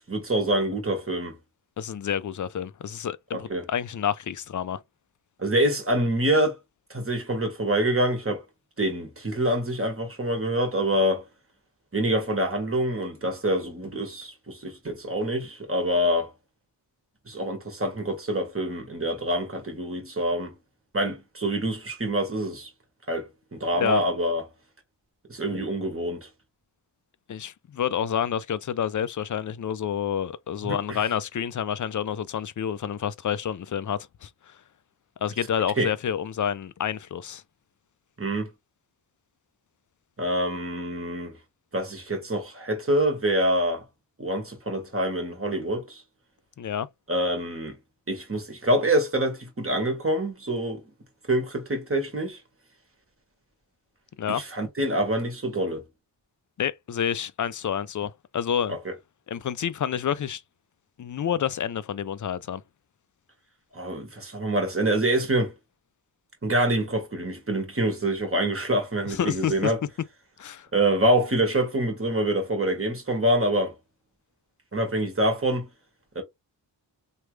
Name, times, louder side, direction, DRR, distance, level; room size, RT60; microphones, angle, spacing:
voice 1, 0.1-1.4 3.3-3.6 5.4-6.6 6.9-8.4 8.8-11.2 11.9-16.3 17.3-20.5 20.9-22.7 23.1-24.4 25.3-26.3 30.6-31.0 35.8-35.9 38.2-38.5 40.2-41.4 41.7-43.8 44.2-46.0 47.1-47.8 48.1-50.8 51.3-52.4 54.3-55.8 58.8-58.9 63.7-65.5 66.4-69.8 70.7-73.7 74.7-75.7 76.1-76.2, right 1 dB, 30° right, 1.5 m, -26 dB
voice 2, 1.8-4.8 23.8-24.0 27.3-34.6 35.2-37.4 46.6-46.9 54.2-54.4 56.6-58.8 59.3-60.4 61.0-62.6 69.1-69.7 70.4-70.7, left 8 dB, 45° left, 0.5 m, -29 dB
3.2 x 2.3 x 3.2 m
cardioid pair, 55°, 44 cm